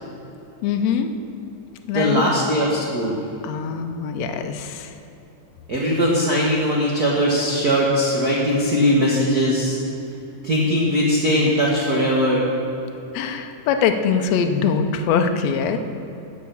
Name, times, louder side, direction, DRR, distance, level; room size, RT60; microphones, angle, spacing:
voice 1, 0.6-1.1 1.9-2.3 3.4-5.0 13.1-15.8, left 6 dB, 85° left, 6 dB, 1.5 m, -22 dB
voice 2, 1.9-3.2 5.7-9.8 10.4-12.5, equal, 75° right, -3 dB, 0.8 m, -20 dB
11.0 x 7.1 x 7.0 m, 2.9 s
omnidirectional pair, 3.9 m